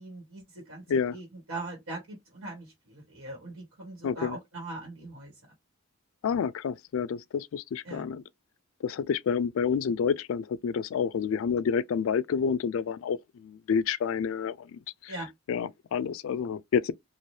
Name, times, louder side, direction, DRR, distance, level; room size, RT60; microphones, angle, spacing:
voice 1, 0.0-5.3 7.8-8.1 15.1-15.3, right 2 dB, 80° right, 1.4 m, -41 dB
voice 2, 4.0-4.4 6.2-8.2 8.8-15.1 15.5-16.9, left 6 dB, 80° left, 0.3 m, -29 dB
3.2 x 2.4 x 2.7 m
head